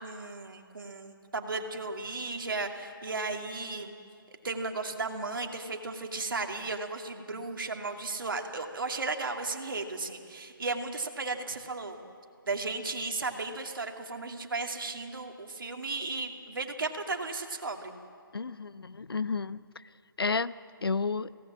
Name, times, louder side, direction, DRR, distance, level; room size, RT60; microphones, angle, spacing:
voice 1, 0.0-3.9 4.4-12.0 12.4-17.9, right 3 dB, 65° right, 3 dB, 2.5 m, -35 dB
voice 2, 18.3-19.6 20.2-20.5 20.8-21.3, left 4 dB, 85° left, 17 dB, 0.7 m, -31 dB
23.5 x 18.0 x 7.6 m, 2.3 s
figure-of-eight pair, 160°, 12 cm